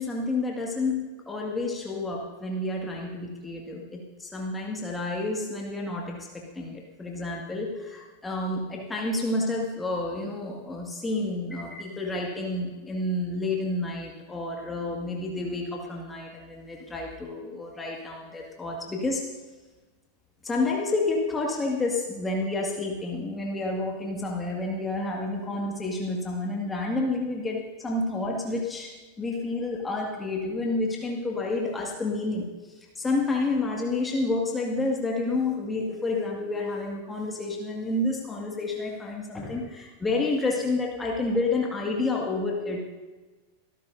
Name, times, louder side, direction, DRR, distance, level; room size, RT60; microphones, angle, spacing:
voice 1, 0.0-19.3 20.4-42.8, left 2 dB, 10° left, -1 dB, 2.0 m, -29 dB
23.5 x 13.0 x 2.7 m, 1.3 s
figure-of-eight pair, 90°, 0 cm